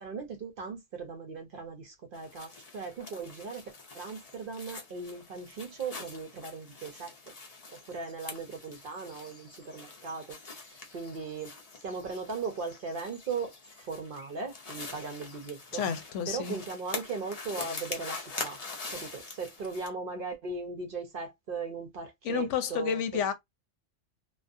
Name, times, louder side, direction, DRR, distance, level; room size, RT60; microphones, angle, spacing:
voice 1, 0.0-7.3 7.9-11.5 11.8-15.8 16.3-18.6 18.9-23.3, right 4 dB, 55° right, 0.7 m, -38 dB
sound 1, 2.1-19.9, left 3 dB, 40° left, 0.6 m, -44 dB
voice 2, 15.7-16.6 22.2-23.3, left 7 dB, 80° left, 0.9 m, -30 dB
2.3 x 2.3 x 2.5 m
omnidirectional pair, 1.3 m